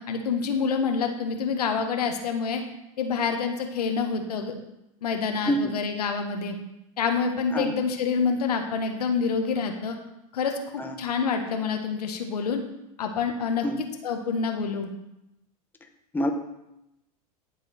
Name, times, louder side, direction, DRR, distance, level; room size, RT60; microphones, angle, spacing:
voice 1, 0.0-2.6 3.0-4.5 5.0-6.5 7.0-10.0 10.3-10.5 11.0-12.6 13.0-13.6 14.0-14.9, left 5 dB, 85° left, 4 dB, 1.5 m, -27 dB
voice 2, 5.4-5.7 7.5-7.7 10.8-11.0 13.6-13.8 16.1-16.3, equal, 10° left, 4 dB, 1.4 m, -26 dB
12.0 x 7.2 x 4.4 m, 0.87 s
hypercardioid pair, 100°, 20 cm